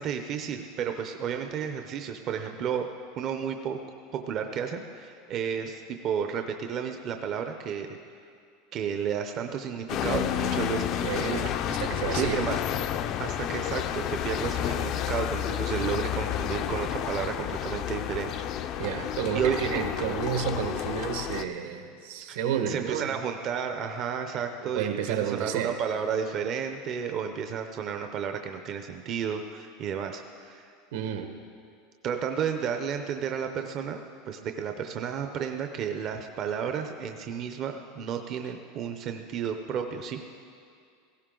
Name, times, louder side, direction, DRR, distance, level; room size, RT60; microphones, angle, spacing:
voice 1, 0.0-2.9 3.2-3.8 4.1-8.3 8.7-11.6 12.1-12.6 13.2-18.8 19.3-19.6 22.3-22.4 22.7-30.7 32.0-34.0 34.3-40.3, right 7 dB, 35° right, 5 dB, 0.6 m, -32 dB
sound 1, 9.9-21.4, left 10 dB, 35° left, 0.4 m, -30 dB
voice 2, 11.0-12.4 18.8-23.1 24.6-25.8 30.9-31.3, right 8 dB, 75° right, 6 dB, 1.3 m, -31 dB
17.5 x 15.5 x 3.8 m, 2.3 s
supercardioid pair, 170°, 0 cm